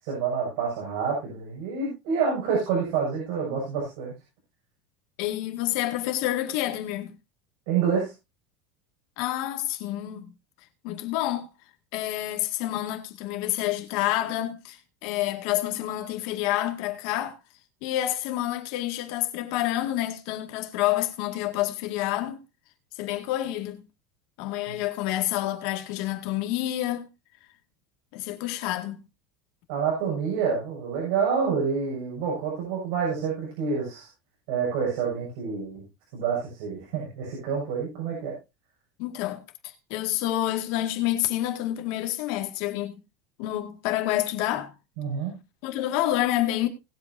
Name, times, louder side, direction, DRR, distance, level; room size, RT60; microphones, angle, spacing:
voice 1, 0.0-4.1 7.7-8.1 24.7-24.8 29.7-34.1 34.5-35.8 36.1-38.3 45.0-45.3, right 6 dB, 60° right, 6.7 m, -28 dB
voice 2, 5.2-7.1 9.2-10.3 10.8-11.5 11.9-17.4 17.8-22.4 23.0-23.8 24.4-27.1 28.1-29.0 39.0-43.0 43.4-44.7 45.6-46.7, left 14 dB, 55° left, 2.1 m, -28 dB
20.0 x 8.0 x 2.8 m
supercardioid pair, 165°, 0 cm